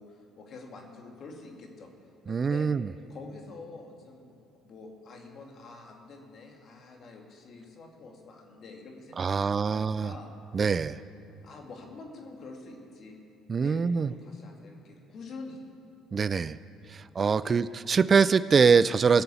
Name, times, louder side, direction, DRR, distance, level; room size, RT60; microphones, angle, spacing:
voice 1, 0.0-1.9 2.3-2.7 3.1-10.3 11.4-13.1 13.6-15.6 17.4-17.6, left 3 dB, 55° left, 1 dB, 2.5 m, -46 dB
voice 2, 2.3-2.9 9.2-10.1 10.5-11.0 13.5-14.1 16.1-16.6 16.9-19.2, right 5 dB, 35° right, 16 dB, 0.3 m, -24 dB
18.0 x 6.8 x 8.4 m, 2.9 s
supercardioid pair, 75°, 0 cm